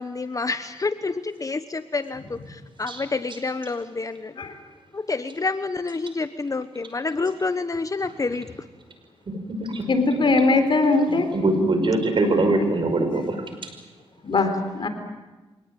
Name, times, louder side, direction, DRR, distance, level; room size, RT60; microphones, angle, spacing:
voice 1, 0.0-4.4 4.9-8.5, left 3 dB, 35° left, 11 dB, 1.0 m, -28 dB
voice 2, 9.3-9.9 11.1-13.4, right 2 dB, 55° right, 7 dB, 5.6 m, -23 dB
voice 3, 9.9-11.3 12.9-13.0 14.2-14.9, left 3 dB, 55° left, 7 dB, 4.2 m, -20 dB
25.5 x 18.5 x 9.2 m, 1.2 s
cardioid pair, 65°, 10 cm